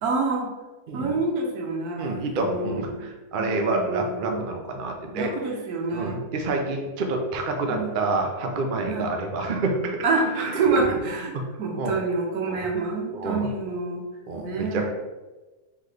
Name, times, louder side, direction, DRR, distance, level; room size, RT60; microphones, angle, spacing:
voice 1, 0.0-0.5 0.9-3.0 3.4-4.4 5.1-6.2 7.7-7.9 8.9-9.0 10.0-14.0 14.4-14.9, right 3 dB, 80° right, 0 dB, 1.3 m, -27 dB
voice 2, 2.0-5.3 5.9-10.0 10.3-10.9 11.3-11.4 11.7-12.0 12.5-12.6 13.1-13.5 14.3-14.9, right 2 dB, 65° right, 2 dB, 0.5 m, -28 dB
3.9 x 3.1 x 3.3 m, 1.2 s
omnidirectional pair, 1.6 m